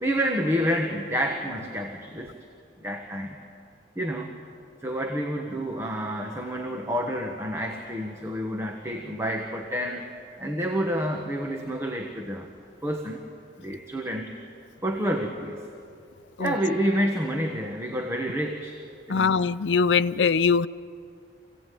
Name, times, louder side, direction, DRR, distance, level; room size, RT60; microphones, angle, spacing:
voice 1, 0.0-2.3 2.8-3.4 3.9-4.3 4.8-10.0 10.4-12.5 12.8-13.2 13.6-14.3 14.8-15.6 16.4-18.8 19.1-19.3, equal, 15° right, 2 dB, 1.4 m, -29 dB
voice 2, 19.1-20.7, left 5 dB, 80° left, 15 dB, 0.5 m, -22 dB
25.5 x 17.0 x 9.4 m, 2.4 s
head